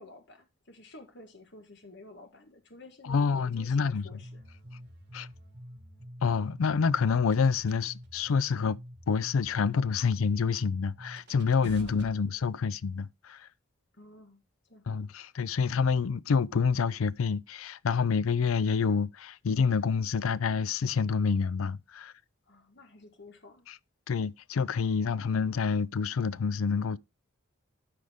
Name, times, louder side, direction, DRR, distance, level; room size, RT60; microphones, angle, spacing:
voice 1, 0.0-4.3 11.6-12.0 14.0-14.4 14.7-14.8 22.5-23.6, left 2 dB, 55° left, 1.6 m, -51 dB
voice 2, 3.0-4.2 5.1-5.3 6.2-8.8 9.1-13.5 14.9-22.1 23.7-23.8 24.1-27.0, left 5 dB, 80° left, 0.4 m, -27 dB
sound 1, 4.0-12.1, equal, 50° right, 2.1 m, -47 dB
12.0 x 5.0 x 3.6 m
head